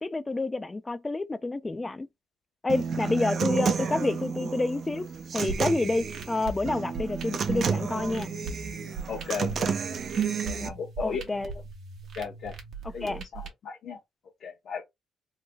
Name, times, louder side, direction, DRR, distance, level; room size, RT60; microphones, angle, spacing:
voice 1, 0.0-2.1 2.6-5.0 5.3-8.3 11.0-11.5 13.0-13.2, left 2 dB, 20° left, 0.4 m, -29 dB
Human voice / Acoustic guitar, 2.7-10.7, right 6 dB, 55° right, 0.5 m, -31 dB
sound 1, 5.5-13.5, right 4 dB, 70° right, 0.9 m, -40 dB
voice 2, 9.1-9.8 10.2-11.2 12.2-12.5 12.9-14.0 14.4-14.8, left 6 dB, 65° left, 0.9 m, -36 dB
3.2 x 2.1 x 3.4 m
cardioid pair, 90°, 0 cm